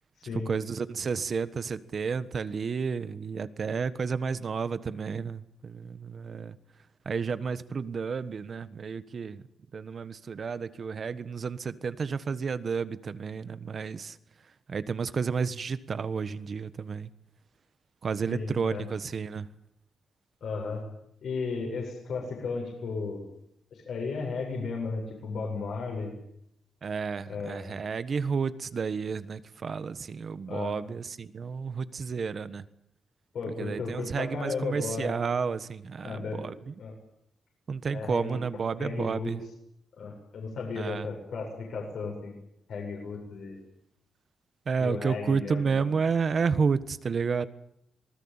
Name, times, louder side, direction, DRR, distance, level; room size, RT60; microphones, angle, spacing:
voice 1, 0.5-6.6 7.0-9.4 9.7-14.2 14.7-17.1 18.0-19.5 26.8-32.6 33.6-36.7 37.7-39.4 40.7-41.1 44.6-47.5, right 5 dB, 40° right, 14 dB, 1.4 m, -31 dB
voice 2, 18.3-18.8 20.4-20.9 21.2-23.3 23.7-26.1 27.3-27.8 30.5-30.7 33.3-35.1 36.0-36.5 36.8-36.9 37.9-38.4 38.8-39.3 40.0-42.4 42.7-43.6 44.8-45.9, left 4 dB, 60° left, 1 dB, 7.7 m, -34 dB
26.0 x 20.0 x 8.9 m, 0.76 s
cardioid pair, 140°, 0 cm